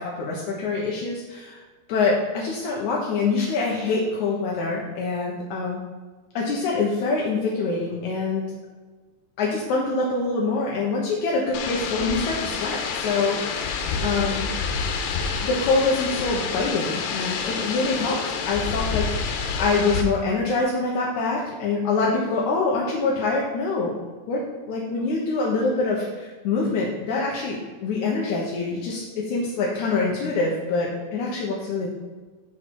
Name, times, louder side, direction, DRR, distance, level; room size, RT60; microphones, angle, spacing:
voice 1, 0.0-1.6 1.9-5.8 6.4-8.4 9.4-14.5 15.4-23.9 24.3-24.4 24.7-31.9, left 3 dB, 70° left, -3 dB, 1.9 m, -25 dB
sound 1, 11.5-20.0, left 5 dB, 85° left, 2.9 m, -28 dB
7.7 x 6.4 x 4.7 m, 1.4 s
omnidirectional pair, 4.8 m